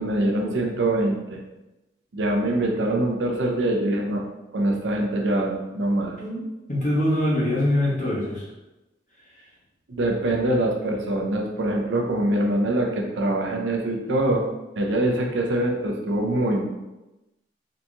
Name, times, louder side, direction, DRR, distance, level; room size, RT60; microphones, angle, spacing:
voice 1, 0.0-1.4 2.1-4.2 4.5-6.2 9.9-14.4 14.8-16.7, right 1 dB, 80° right, 1 dB, 0.6 m, -24 dB
voice 2, 6.7-8.5 9.3-9.4, left 1 dB, 40° left, -5 dB, 0.9 m, -23 dB
3.9 x 2.8 x 2.3 m, 1.0 s
head